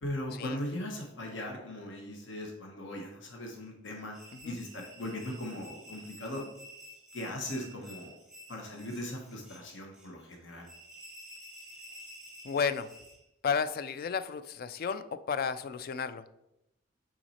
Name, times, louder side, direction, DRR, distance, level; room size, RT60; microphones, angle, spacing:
voice 1, 0.0-4.2 4.4-6.5 7.1-8.1 8.5-10.7, left 1 dB, 70° left, 1 dB, 1.0 m, -39 dB
sound 1, 4.1-13.2, equal, 5° right, 0.8 m, -51 dB
voice 2, 12.4-12.9 13.4-16.3, left 6 dB, 50° left, 13 dB, 0.3 m, -32 dB
5.9 x 4.0 x 4.2 m, 0.88 s
head